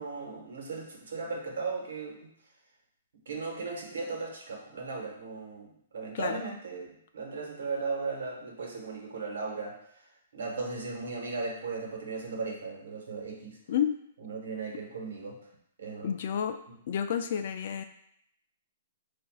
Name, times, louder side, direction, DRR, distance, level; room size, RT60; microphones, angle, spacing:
voice 1, 0.0-2.3 3.3-13.6 14.2-15.4 15.8-16.4 16.7-16.8, right 4 dB, 75° right, 0 dB, 1.1 m, -37 dB
voice 2, 16.0-16.6 16.9-17.8, left 8 dB, 50° left, 8 dB, 0.3 m, -30 dB
5.8 x 2.5 x 2.3 m, 0.72 s
hypercardioid pair, 165°, 0 cm